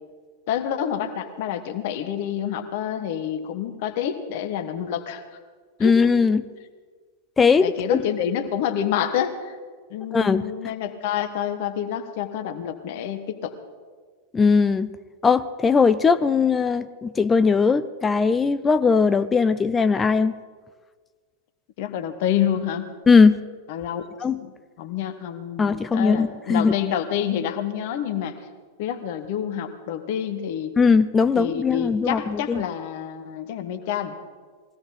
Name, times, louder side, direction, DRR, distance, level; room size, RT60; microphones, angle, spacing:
voice 1, 0.5-5.4 5.8-5.9 7.6-9.6 9.9-13.5 21.8-22.9 23.7-24.0 24.4-24.5 24.8-28.4 28.8-30.7 31.3-34.2, left 9 dB, 50° left, 8 dB, 1.3 m, -28 dB
voice 2, 5.8-6.5 7.4-8.0 10.1-10.5 14.3-14.9 15.2-20.4 23.1-23.4 24.2-24.4 25.6-26.8 30.8-32.6, left 5 dB, 15° left, 13 dB, 0.6 m, -19 dB
21.5 x 16.5 x 4.1 m, 1.5 s
figure-of-eight pair, 90°, 0 cm